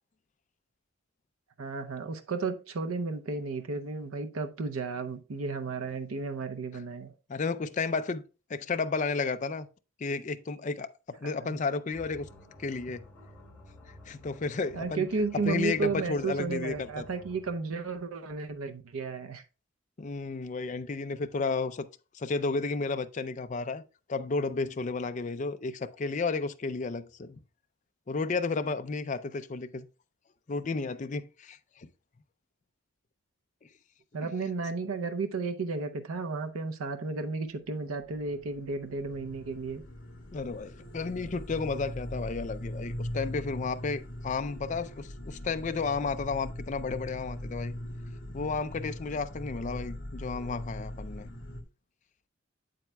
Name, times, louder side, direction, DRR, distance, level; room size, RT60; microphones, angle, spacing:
voice 1, 1.6-7.1 11.4-11.6 14.7-19.4 34.1-39.8, right 4 dB, 90° right, 0.6 m, -33 dB
voice 2, 7.3-8.2 8.5-9.7 10.0-12.3 12.6-13.0 14.1-15.1 15.4-17.1 20.0-21.9 22.1-23.8 24.1-27.4 28.1-29.9 30.5-31.9 34.2-34.3 40.3-47.7 48.3-51.3, left 4 dB, 35° left, 0.4 m, -32 dB
sound 1, 11.9-17.6, left 1 dB, 10° left, 3.1 m, -52 dB
sound 2, 38.0-51.6, left 1 dB, 60° left, 1.3 m, -40 dB
8.0 x 7.6 x 2.2 m
head